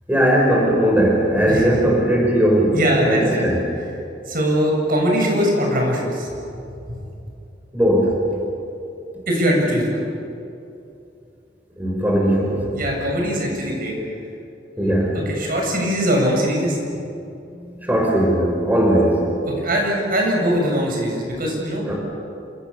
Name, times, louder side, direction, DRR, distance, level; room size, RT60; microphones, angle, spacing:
voice 1, 0.1-2.8 3.1-3.6 7.7-8.2 11.8-12.6 14.8-15.2 17.5-19.5 21.9-22.0, right 1 dB, 10° right, -2 dB, 5.6 m, -18 dB
voice 2, 2.7-3.5 4.3-6.3 9.3-10.0 12.7-13.9 14.8-16.8 19.5-21.8, equal, 55° right, -1 dB, 7.6 m, -21 dB
29.0 x 27.0 x 7.1 m, 2.7 s
head